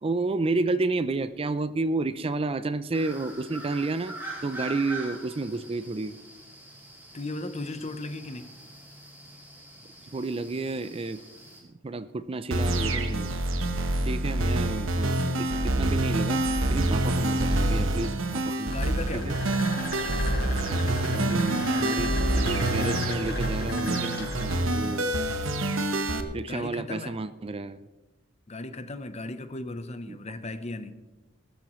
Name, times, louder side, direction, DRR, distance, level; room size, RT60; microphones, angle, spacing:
voice 1, 0.0-4.1 4.4-6.1 10.1-11.2 11.8-13.6 14.0-19.4 20.7-25.1 25.4-25.5 26.3-27.9 30.1-30.2, right 3 dB, 30° right, 13 dB, 0.4 m, -31 dB
sound 1, 2.9-11.6, right 1 dB, 10° right, 3.2 m, -43 dB
voice 2, 7.1-8.5 18.7-19.4 26.4-27.2 28.5-31.0, left 2 dB, 35° left, 10 dB, 0.8 m, -36 dB
sound 2, 12.5-26.2, right 1 dB, 80° right, 1.1 m, -26 dB
sound 3, 17.8-24.6, left 1 dB, 55° left, 5.1 m, -39 dB
20.0 x 13.0 x 3.1 m, 1.1 s
head